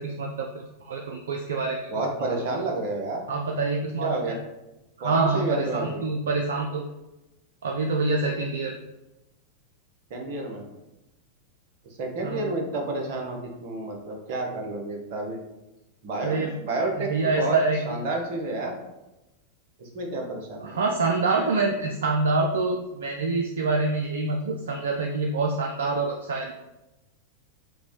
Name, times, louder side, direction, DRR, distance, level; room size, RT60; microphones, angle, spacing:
voice 1, 0.0-1.8 2.2-2.6 3.3-4.4 5.0-6.8 7.6-8.7 12.2-12.6 16.2-16.5 17.0-18.0 20.6-26.5, right 3 dB, 65° right, 1 dB, 0.3 m, -26 dB
voice 2, 1.9-3.2 4.0-4.4 5.0-6.0 10.1-10.6 12.0-15.4 16.0-17.6 17.8-18.7 19.8-20.8, right 2 dB, 50° right, 2 dB, 0.8 m, -30 dB
4.9 x 2.1 x 3.1 m, 0.97 s
figure-of-eight pair, 90°, 0 cm